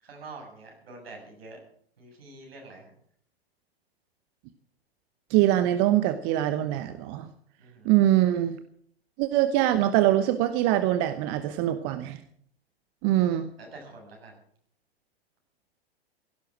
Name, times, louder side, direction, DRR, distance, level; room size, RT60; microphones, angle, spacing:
voice 1, 0.0-1.6 2.0-2.9 7.6-7.9 13.6-14.4, right 3 dB, 70° right, 1 dB, 7.4 m, -46 dB
voice 2, 5.3-7.3 7.8-8.6 9.2-12.2 13.0-13.5, right 13 dB, 40° right, 11 dB, 1.0 m, -23 dB
17.0 x 11.5 x 6.2 m, 0.63 s
figure-of-eight pair, 100°, 31 cm